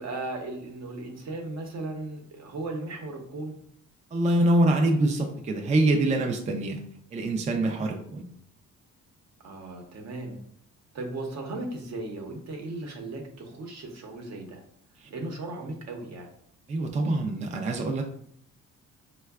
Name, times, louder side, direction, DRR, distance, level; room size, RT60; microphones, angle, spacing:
voice 1, 0.0-3.5 9.4-10.4 10.9-14.6 15.1-16.3, right 2 dB, 60° right, 2 dB, 0.8 m, -36 dB
voice 2, 4.1-6.8 7.1-8.2 15.0-15.1 16.7-18.0, right 1 dB, 25° right, 3 dB, 0.4 m, -25 dB
4.4 x 2.2 x 2.3 m, 0.65 s
cardioid pair, 90°, 30 cm